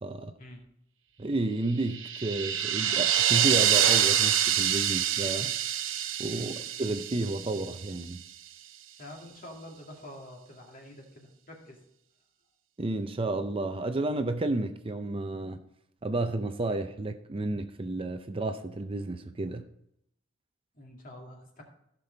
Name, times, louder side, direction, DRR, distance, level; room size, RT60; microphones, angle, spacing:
voice 1, 0.0-0.3 1.2-5.5 6.2-8.2 12.8-15.6 16.0-19.6, right 2 dB, 25° right, 0.5 m, -31 dB
sound 1, 1.8-8.0, right 10 dB, 70° right, 0.7 m, -26 dB
voice 2, 9.0-11.8 20.7-21.6, left 1 dB, 45° left, 2.3 m, -47 dB
15.0 x 6.1 x 3.9 m
head